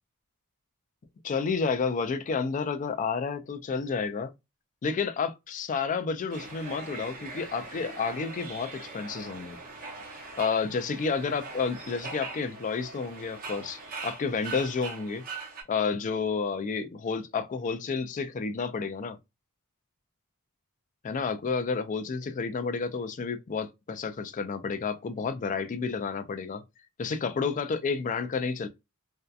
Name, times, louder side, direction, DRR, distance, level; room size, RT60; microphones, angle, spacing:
voice 1, 1.2-4.3 4.8-9.6 10.3-15.2 15.7-19.2 21.0-26.6 27.0-28.7, left 5 dB, 35° left, 0.3 m, -30 dB
sound 1, 6.3-15.6, right 3 dB, 40° right, 0.7 m, -41 dB
2.6 x 2.1 x 2.3 m
head